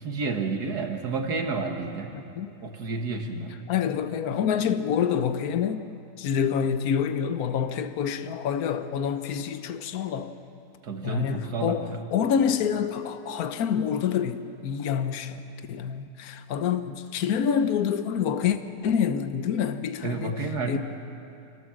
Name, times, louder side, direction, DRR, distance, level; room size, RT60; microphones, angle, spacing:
voice 1, 0.0-2.1 2.6-3.6 10.8-12.0 20.0-20.8, right 3 dB, 70° right, 2.1 m, -30 dB
voice 2, 2.1-2.5 3.7-5.8 6.2-10.3 11.0-15.4 15.7-18.6 18.8-20.4 20.7-20.8, left 8 dB, 65° left, 1.3 m, -27 dB
25.5 x 18.0 x 7.6 m
omnidirectional pair, 1.8 m